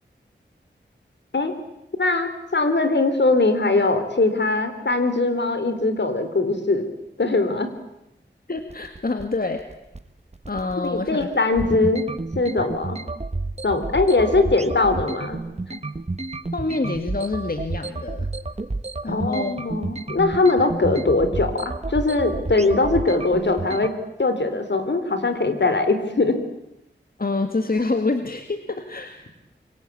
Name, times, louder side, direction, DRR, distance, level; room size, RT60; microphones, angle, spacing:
voice 1, 2.0-6.9 7.2-7.7 10.8-12.1 12.4-13.0 13.6-15.4 15.7-15.8 19.1-23.9 24.2-26.4, left 3 dB, 65° left, 9 dB, 3.9 m, -21 dB
voice 2, 8.5-9.6 10.5-11.5 16.5-18.3 19.0-19.6 27.2-29.4, left 3 dB, 50° left, 7 dB, 2.1 m, -27 dB
sound 1, 8.6-23.9, right 2 dB, 35° right, 1.5 m, -30 dB
26.5 x 24.0 x 8.6 m, 0.86 s
wide cardioid pair, 70°, 19 cm